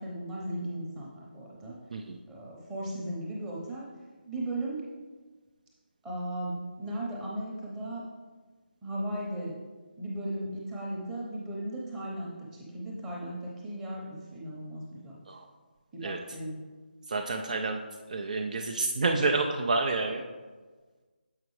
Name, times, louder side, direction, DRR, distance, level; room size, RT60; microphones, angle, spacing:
voice 1, 0.0-1.8 2.3-3.9 4.2-4.8 6.0-8.0 8.8-9.6 10.0-15.2 15.9-16.6, right 1 dB, 10° right, -5 dB, 0.8 m, -36 dB
voice 2, 17.1-17.8 18.1-20.2, right 3 dB, 45° right, 3 dB, 0.4 m, -29 dB
7.4 x 5.0 x 3.2 m, 1.4 s
figure-of-eight pair, 155°, 5 cm